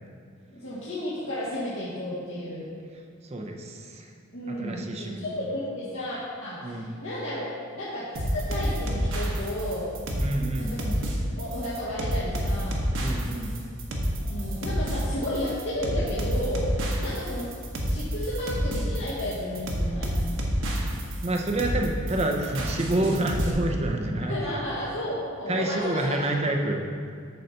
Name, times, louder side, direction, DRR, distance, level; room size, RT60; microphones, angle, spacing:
voice 1, 0.5-2.7 4.3-9.9 10.6-11.1 11.4-12.8 14.2-17.5 17.8-20.1 22.4-22.6 24.3-26.3, left 1 dB, 65° left, -11 dB, 1.7 m, -33 dB
voice 2, 3.2-4.1 4.5-5.2 6.6-6.9 10.2-10.9 13.0-13.5 21.2-24.3 25.5-26.9, right 1 dB, 30° right, 1 dB, 0.6 m, -28 dB
sound 1, 8.2-23.5, equal, 60° right, 1.2 m, -28 dB
8.6 x 4.0 x 6.5 m, 2.2 s
head